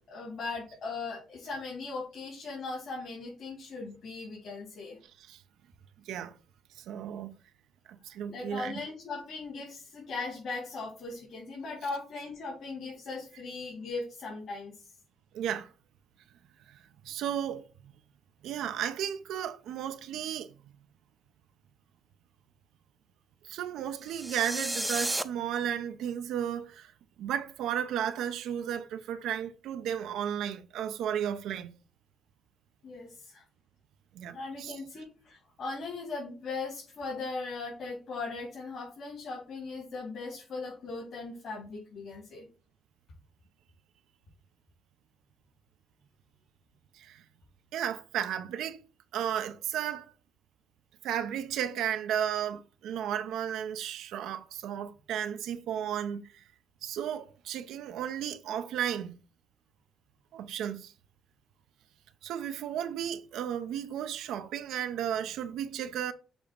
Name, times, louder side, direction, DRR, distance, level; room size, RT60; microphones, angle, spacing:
voice 1, 0.1-5.0 8.3-14.9 32.8-33.4 34.3-42.5, left 3 dB, 65° left, 3.2 m, -39 dB
voice 2, 6.8-7.3 8.0-8.8 15.3-15.7 16.7-16.8 17.0-17.9 18.4-20.7 23.4-26.9 27.2-31.7 34.1-34.8 46.9-47.2 47.7-48.8 49.1-50.1 51.0-56.4 56.8-59.1 60.3-60.9 62.2-66.1, right 9 dB, 85° right, 0.6 m, -34 dB
sound 1, 24.0-25.2, right 1 dB, 5° right, 0.5 m, -32 dB
7.0 x 2.9 x 5.2 m
cardioid pair, 90°, 0 cm